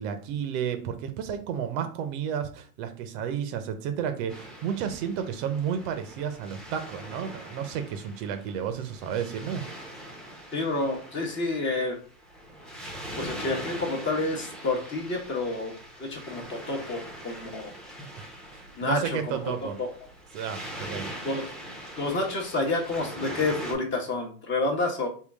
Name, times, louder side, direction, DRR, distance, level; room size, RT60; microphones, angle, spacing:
voice 1, 0.0-9.6 18.2-18.3 18.5-19.8 20.3-21.1, right 8 dB, 50° right, 8 dB, 0.6 m, -32 dB
Waves surf, 4.3-23.7, equal, ahead, 0.6 m, -42 dB
voice 2, 10.5-12.0 13.2-15.7 16.0-17.7 18.8-19.5 19.8-19.9 21.2-21.4 22.0-25.1, left 2 dB, 25° left, 1 dB, 0.9 m, -29 dB
3.7 x 2.3 x 3.4 m, 0.41 s
supercardioid pair, 125°, 45 cm